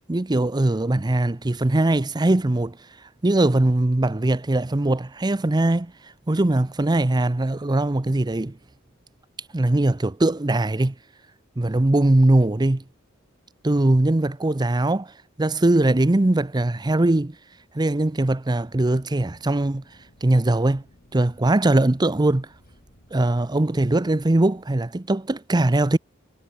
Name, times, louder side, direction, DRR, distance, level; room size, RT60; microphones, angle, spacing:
voice 1, 0.1-8.6 9.5-10.9 11.6-12.8 13.6-17.4 17.7-19.8 20.2-20.8 21.1-22.5 23.1-26.0, right 2 dB, 20° right, 0.6 m, -21 dB
sound 1, 19.3-24.9, equal, 50° left, 7.1 m, -56 dB
head